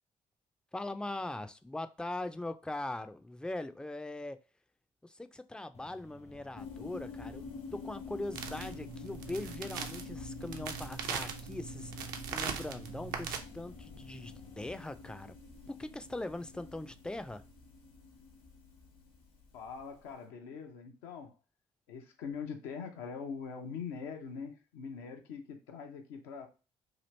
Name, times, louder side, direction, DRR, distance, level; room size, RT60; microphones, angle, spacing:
voice 1, 0.7-4.4 5.0-15.4 15.7-17.4, left 2 dB, 5° left, 0.3 m, -41 dB
sound 1, 5.7-14.7, left 4 dB, 45° left, 0.7 m, -57 dB
sound 2, 6.6-20.0, left 5 dB, 60° left, 1.1 m, -48 dB
sound 3, 8.3-13.4, right 7 dB, 75° right, 0.5 m, -40 dB
voice 2, 19.5-21.4 21.9-26.5, left 6 dB, 80° left, 0.6 m, -43 dB
2.9 x 2.5 x 3.1 m
hypercardioid pair, 45°, 16 cm